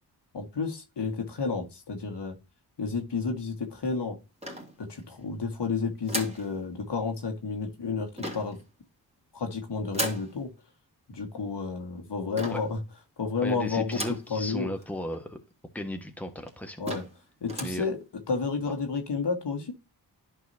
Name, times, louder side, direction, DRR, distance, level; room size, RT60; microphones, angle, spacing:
voice 1, 0.3-2.3 2.8-4.2 4.8-8.6 9.3-10.5 11.1-12.8 13.2-14.0 14.3-14.7 16.8-17.0 17.4-18.0 18.3-19.7, left 4 dB, 65° left, 1.8 m, -31 dB
sound 1, 4.4-5.2 6.1-6.5 8.2-8.6 9.9-10.3 12.4-12.8 13.9-14.3 14.8-14.9 15.1-15.2 16.0-16.1 16.5-16.6 16.9-17.2 17.5-17.8, equal, 15° right, 2.5 m, -35 dB
voice 2, 13.4-15.4 15.7-16.8 17.6-17.8, equal, 5° left, 1.5 m, -35 dB
11.0 x 4.6 x 2.8 m
cardioid pair, 55°, 44 cm